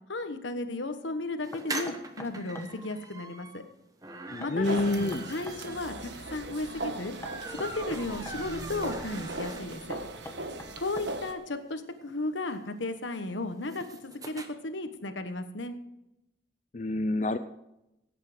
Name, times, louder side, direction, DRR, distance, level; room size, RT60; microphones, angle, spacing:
voice 1, 0.1-3.6 4.4-7.1 7.5-10.0 10.8-15.7, left 2 dB, 85° left, 8 dB, 1.3 m, -35 dB
sound 1, 1.4-10.0 10.4-10.5 10.7-10.8 11.1-14.5, right 2 dB, 20° right, 1.0 m, -43 dB
Knock, 1.5-2.7 4.4-5.6 7.2-8.4 9.9-11.4, left 1 dB, 15° left, 1.0 m, -44 dB
voice 2, 4.3-5.3 16.7-17.4, left 2 dB, 40° left, 9 dB, 0.5 m, -28 dB
sound 2, 4.6-11.3, right 2 dB, 75° right, 1.3 m, -38 dB
17.0 x 8.4 x 5.1 m, 0.88 s
head